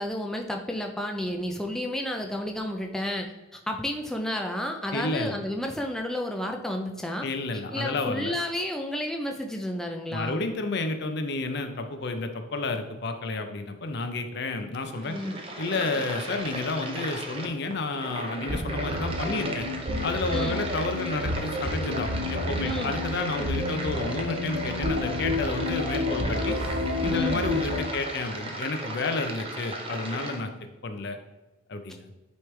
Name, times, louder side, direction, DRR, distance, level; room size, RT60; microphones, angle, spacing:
voice 1, 0.0-7.3 7.7-10.4 15.0-15.3 20.3-20.6 22.6-22.9 23.3-23.5 27.1-27.4, left 1 dB, ahead, 2 dB, 0.4 m, -31 dB
voice 2, 4.9-5.4 7.2-8.3 10.1-15.2 15.6-19.7 20.0-26.6 27.0-30.5 30.8-31.2 31.7-32.1, left 3 dB, 55° left, 6 dB, 0.6 m, -31 dB
sound 1, 14.8-30.4, right 1 dB, 30° right, 0.8 m, -36 dB
sound 2, 18.5-27.8, left 2 dB, 85° right, 1.4 m, -30 dB
9.2 x 3.2 x 3.3 m, 1.1 s
head